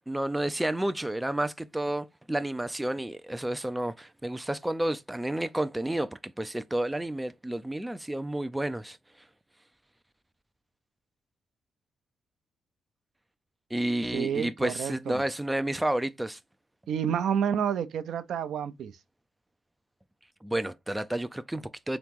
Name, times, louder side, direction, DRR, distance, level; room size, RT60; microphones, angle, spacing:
voice 1, 0.1-9.0 13.7-16.4 20.4-22.0, right 1 dB, 10° right, 0.3 m, -31 dB
voice 2, 14.1-15.2 16.9-18.9, right 8 dB, 70° right, 0.5 m, -29 dB
3.7 x 2.9 x 3.5 m
cardioid pair, 90°, 0 cm